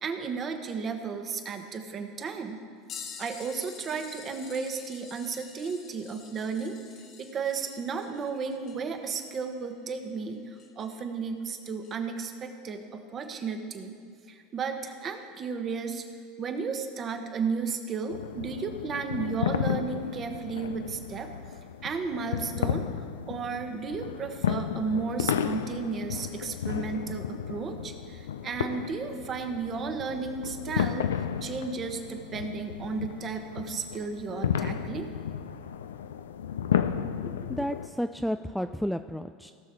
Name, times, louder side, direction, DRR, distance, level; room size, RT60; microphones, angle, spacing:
voice 1, 0.0-2.6 3.2-6.8 7.2-14.0 14.3-16.0 16.4-21.3 21.8-22.9 23.3-31.1 31.4-35.1, right 5 dB, 35° right, 6 dB, 1.2 m, -34 dB
sound 1, 2.9-11.1 11.8-11.9 14.2-14.3 15.4-15.5 16.6-16.7, left 7 dB, 45° left, 1.1 m, -48 dB
sound 2, 18.1-37.9, left 8 dB, 85° left, 0.4 m, -33 dB
voice 2, 36.9-39.5, equal, ahead, 8 dB, 0.3 m, -32 dB
17.0 x 6.3 x 4.5 m, 2.1 s
hypercardioid pair, 90°, 0 cm